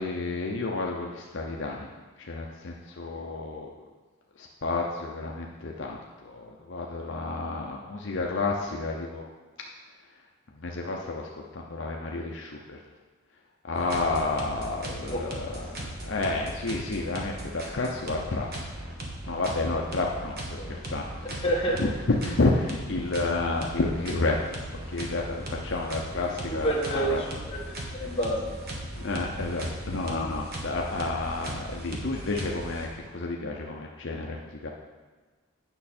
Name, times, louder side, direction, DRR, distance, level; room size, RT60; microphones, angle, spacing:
voice 1, 0.0-1.9 2.2-3.7 4.4-9.2 10.5-12.8 13.6-15.8 16.0-18.7 19.2-21.4 21.8-24.6 24.9-27.2 28.9-34.7, left 3 dB, 60° left, -1 dB, 0.7 m, -30 dB
sound 1, 13.8-33.2, right 1 dB, 45° right, 1.3 m, -38 dB
voice 2, 15.0-15.6 20.5-20.7 21.2-21.8 26.3-28.4, right 1 dB, 25° left, -4 dB, 1.6 m, -30 dB
9.0 x 6.0 x 4.3 m, 1.4 s
head